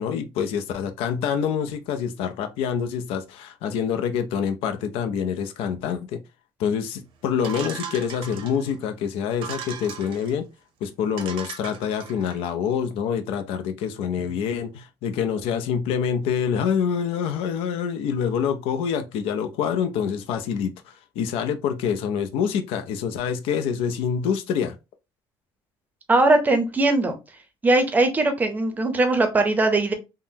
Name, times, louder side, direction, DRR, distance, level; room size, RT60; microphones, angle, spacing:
voice 1, 0.0-6.2 6.6-10.5 10.8-24.8, left 7 dB, 90° left, 0.5 m, -26 dB
sound 1, 7.4-8.7 9.3-10.3 10.8-10.9 11.2-12.4, right 7 dB, 75° right, 0.7 m, -37 dB
voice 2, 26.1-27.2 27.6-29.9, right 2 dB, 20° right, 0.6 m, -20 dB
3.6 x 2.0 x 2.7 m
cardioid pair, 150°, 9 cm